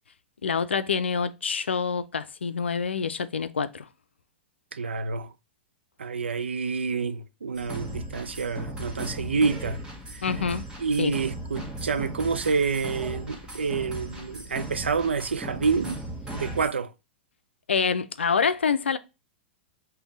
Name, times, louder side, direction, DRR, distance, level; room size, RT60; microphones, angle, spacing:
voice 1, 0.4-3.9 10.2-10.6 11.0-11.1 17.7-19.0, left 6 dB, 85° left, 0.4 m, -26 dB
voice 2, 4.7-5.3 6.0-9.8 10.1-10.2 10.8-16.0 16.3-16.9, right 5 dB, 85° right, 0.5 m, -28 dB
sound 1, 7.5-16.7, right 1 dB, 15° right, 1.2 m, -37 dB
5.2 x 2.3 x 3.9 m
hypercardioid pair, 105°, 6 cm